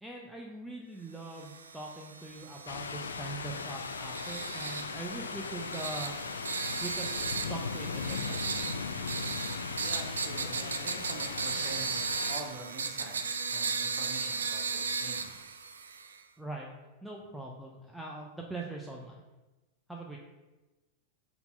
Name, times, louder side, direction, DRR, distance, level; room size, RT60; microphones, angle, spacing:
voice 1, 0.0-6.5 6.8-7.1 7.5-8.4 16.4-16.7 17.0-19.2 19.9-20.2, right 2 dB, 5° right, -1 dB, 0.7 m, -42 dB
sound 1, 1.3-16.2, right 5 dB, 70° right, 0.5 m, -36 dB
sound 2, 2.7-12.4, left 5 dB, 70° left, 0.4 m, -38 dB
voice 2, 9.8-15.5, right 3 dB, 40° right, 0 dB, 1.5 m, -45 dB
5.7 x 3.9 x 5.8 m, 1.1 s
figure-of-eight pair, 90°, 0 cm